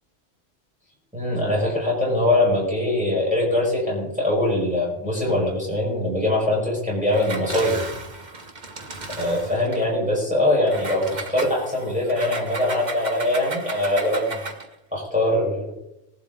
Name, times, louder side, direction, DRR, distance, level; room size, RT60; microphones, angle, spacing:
voice 1, 1.1-7.8 9.2-14.4 14.9-15.7, left 1 dB, 5° right, -5 dB, 5.2 m, -22 dB
Engine, 7.1-9.9 10.7-14.7, right 3 dB, 35° right, 1.4 m, -35 dB
19.5 x 11.5 x 3.9 m, 0.87 s
omnidirectional pair, 1.3 m